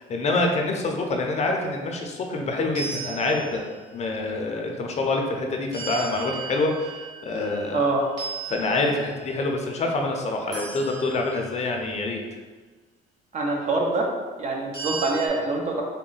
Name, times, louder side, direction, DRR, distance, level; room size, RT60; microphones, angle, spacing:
voice 1, 0.0-3.6 3.9-7.9 8.5-12.4, left 2 dB, 40° left, 2 dB, 0.5 m, -26 dB
sound 1, 2.8-3.9 5.7-7.8 8.2-9.4 10.5-11.6 14.7-15.3, right 5 dB, 85° right, 1.4 m, -36 dB
voice 2, 7.7-8.1 13.3-14.1 14.4-15.8, right 2 dB, 45° right, 0 dB, 0.7 m, -25 dB
3.6 x 2.1 x 4.0 m, 1.4 s
cardioid pair, 110°, 17 cm